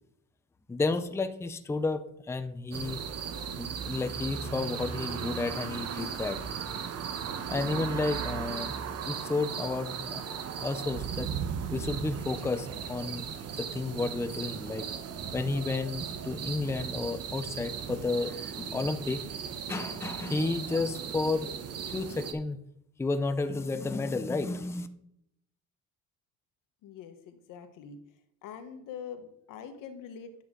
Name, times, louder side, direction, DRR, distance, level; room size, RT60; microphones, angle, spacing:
voice 1, 0.7-3.0 3.6-6.4 7.5-10.3 10.6-11.3 11.7-13.3 13.5-14.9 15.3-19.2 19.7-21.5 21.9-22.6 23.0-24.9, left 3 dB, 10° left, 9 dB, 0.5 m, -32 dB
sound 1, 2.7-22.3, right 7 dB, 50° right, 1.0 m, -37 dB
voice 2, 26.8-28.0 28.4-30.4, left 7 dB, 85° left, 7 dB, 1.3 m, -44 dB
10.5 x 7.6 x 3.8 m, 0.75 s
cardioid pair, 140°, 31 cm